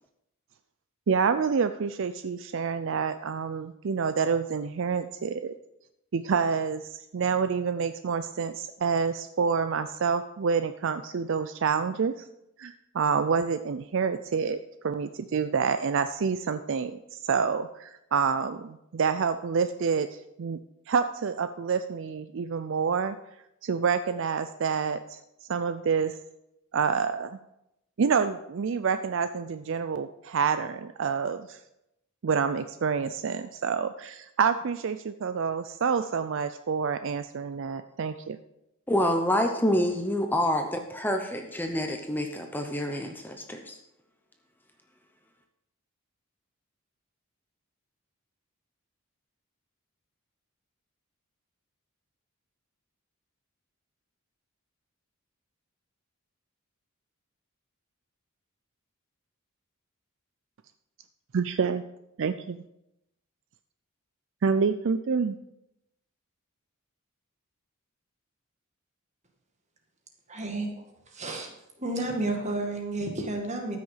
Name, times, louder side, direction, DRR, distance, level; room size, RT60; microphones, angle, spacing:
voice 1, 1.1-5.5 6.1-12.3 12.6-14.6 14.8-20.6 20.9-23.2 23.6-26.2 26.7-27.4 28.0-31.6 32.2-38.4 61.3-61.8 62.2-62.6 64.4-65.4, right 6 dB, 55° right, 10 dB, 0.4 m, -28 dB
voice 2, 38.9-43.8, equal, 10° left, 4 dB, 0.7 m, -27 dB
voice 3, 70.3-70.7 71.1-71.5 71.8-73.8, right 2 dB, 30° right, 2 dB, 1.9 m, -31 dB
13.5 x 6.3 x 5.6 m, 0.85 s
head